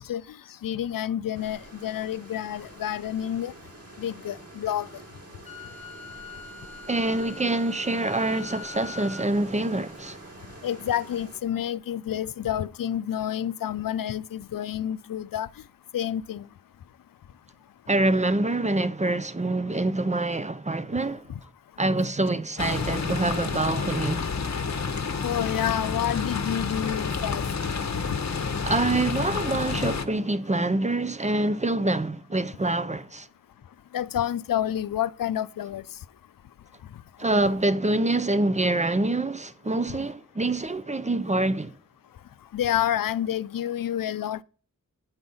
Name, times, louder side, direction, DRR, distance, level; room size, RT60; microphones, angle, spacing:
voice 1, 0.0-3.5 4.0-4.9 10.6-15.5 15.9-16.5 25.2-27.5 33.9-35.8 37.2-37.3 42.5-44.4, left 10 dB, 75° left, 0.5 m, -29 dB
sound 1, 1.3-11.4, right 1 dB, 45° right, 2.5 m, -47 dB
Wind instrument woodwind instrument, 5.4-9.3, left 5 dB, 20° left, 1.4 m, -43 dB
voice 2, 6.9-10.2 17.9-21.3 21.8-24.3 28.6-33.3 37.2-41.7, right 2 dB, 20° right, 0.6 m, -25 dB
sound 2, 22.6-30.0, left 5 dB, 55° left, 1.0 m, -29 dB
9.6 x 6.1 x 5.5 m
cardioid pair, 50°, 34 cm